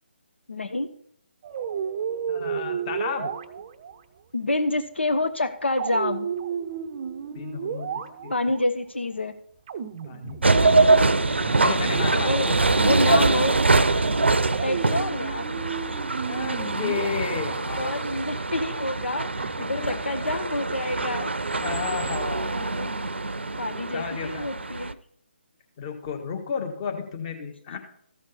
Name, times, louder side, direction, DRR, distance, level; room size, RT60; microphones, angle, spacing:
voice 1, 0.5-0.9 4.3-6.3 8.3-9.3 12.1-12.5 12.7-13.6 14.6-15.5 17.5-21.3 22.5-22.9 23.6-25.0, left 2 dB, 80° left, 9 dB, 0.8 m, -28 dB
sound 1, 1.4-4.0 5.8-8.6 9.7-10.9 11.2-12.7 14.5-17.7 19.4-20.1, right 7 dB, 30° right, 0.6 m, -33 dB
voice 2, 2.3-3.3 7.3-8.3 10.0-10.8 11.6-12.8 16.3-18.0 19.6-20.0 21.6-22.5 22.9-23.0 23.9-24.5 25.8-27.8, left 6 dB, 30° left, 4 dB, 1.5 m, -33 dB
sound 2, 10.4-24.9, right 3 dB, 75° right, 0.6 m, -24 dB
14.5 x 6.3 x 4.2 m, 0.66 s
figure-of-eight pair, 145°, 6 cm